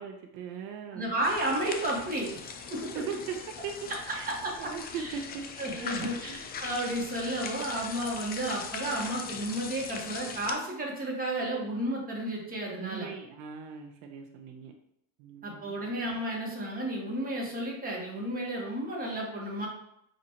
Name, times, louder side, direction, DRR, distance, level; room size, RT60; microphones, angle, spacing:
voice 1, 0.0-1.2 2.9-4.3 4.6-5.5 5.7-6.4 12.8-14.7 15.2-15.8, right 6 dB, 80° right, 4 dB, 0.6 m, -40 dB
voice 2, 0.9-2.4 2.7-3.0 4.3-5.1 5.6-13.1 15.4-19.7, right 1 dB, 20° right, -3 dB, 1.3 m, -32 dB
sound 1, 1.2-10.5, left 5 dB, 25° left, 0.3 m, -40 dB
5.0 x 2.6 x 2.8 m, 0.78 s
cardioid pair, 120°, 39 cm